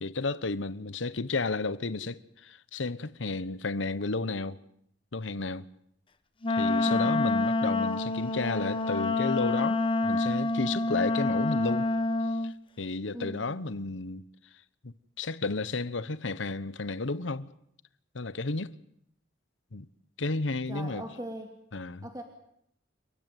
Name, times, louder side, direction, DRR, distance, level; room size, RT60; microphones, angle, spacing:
voice 1, 0.0-4.6 5.1-5.7 6.5-11.9 12.4-14.2 14.8-17.5 18.1-18.7 19.7-19.9 20.2-21.0 21.7-22.1, left 3 dB, 90° left, 1.0 m, -32 dB
Wind instrument woodwind instrument, 6.4-12.5, left 2 dB, 25° left, 1.1 m, -27 dB
voice 2, 6.8-7.2 13.1-13.5 20.7-21.5 22.0-22.2, equal, 20° right, 2.6 m, -40 dB
29.5 x 14.0 x 9.3 m
head